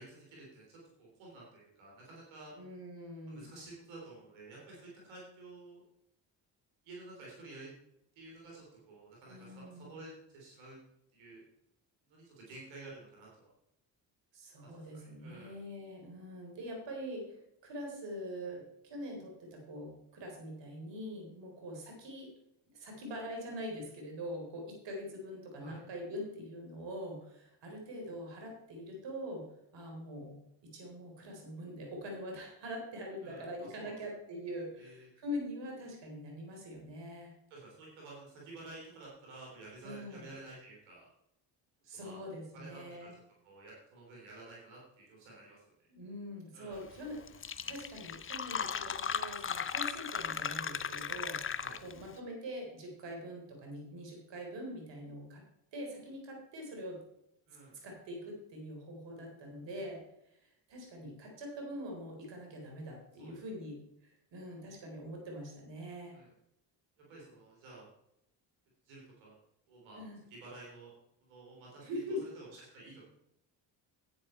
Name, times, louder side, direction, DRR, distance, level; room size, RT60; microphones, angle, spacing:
voice 1, 0.0-2.5 3.3-5.8 6.8-7.7 8.2-10.8 11.1-11.4 12.1-13.5 14.6-14.8 15.2-15.6 25.6-25.8 33.2-34.0 34.8-35.1 37.5-41.1 41.9-42.2 42.5-45.6 46.5-46.8 51.6-51.8 57.5-57.7 63.2-63.3 66.1-66.3 67.0-67.9 68.9-69.4 69.7-70.0 70.3-70.9 71.2-71.8 72.2-73.1, right 2 dB, 90° right, -4 dB, 3.6 m, -51 dB
voice 2, 2.6-3.5 9.3-9.9 14.3-22.3 22.7-29.4 29.7-37.3 39.8-40.3 41.8-43.1 45.9-47.2 47.7-51.4 51.8-55.4 55.7-57.0 57.8-60.0 60.3-66.2 69.9-70.2 71.8-72.2, equal, 70° right, 1 dB, 3.9 m, -43 dB
Fill (with liquid), 47.0-47.1 47.3-52.1, left 7 dB, 30° left, 0.6 m, -37 dB
10.5 x 9.0 x 4.4 m, 0.78 s
supercardioid pair, 65°, 45 cm